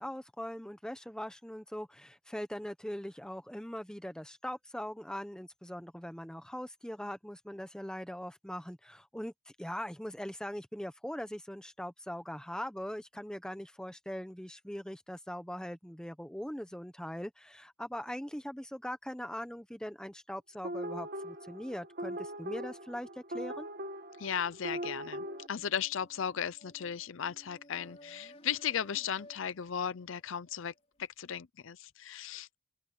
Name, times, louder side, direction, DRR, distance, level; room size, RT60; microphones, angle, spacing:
voice 1, 0.0-9.3 9.6-23.7, equal, 5° left, 1.1 m, -41 dB
sound 1, 20.6-25.5, right 1 dB, 45° right, 1.8 m, -40 dB
voice 2, 24.2-30.7 31.0-32.6, left 8 dB, 65° left, 0.5 m, -36 dB
sound 2, 25.0-30.8, equal, 30° left, 5.3 m, -57 dB
open air
head